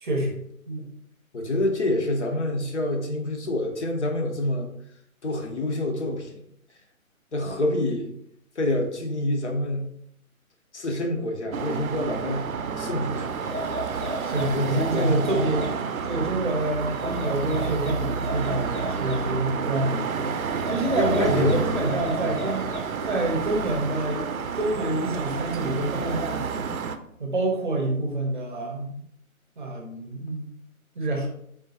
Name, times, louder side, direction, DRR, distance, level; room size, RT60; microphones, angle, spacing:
voice 1, 0.0-0.9 14.2-15.7 16.0-20.3 20.7-22.7 23.0-24.3 24.5-26.4 27.2-29.0 29.6-30.4 31.0-31.3, right 2 dB, 35° right, 1 dB, 0.7 m, -27 dB
voice 2, 1.3-4.7 5.2-6.4 7.3-8.1 8.6-9.9 10.7-12.5 12.8-13.4 14.5-15.4 21.0-21.9, left 1 dB, 55° left, 3 dB, 0.8 m, -27 dB
sound 1, 11.5-27.0, right 5 dB, 75° right, 0.5 m, -30 dB
sound 2, 13.3-15.8 16.8-19.3 20.5-23.0, left 1 dB, 85° left, 1.2 m, -36 dB
3.7 x 3.5 x 2.8 m, 0.71 s
figure-of-eight pair, 140°, 43 cm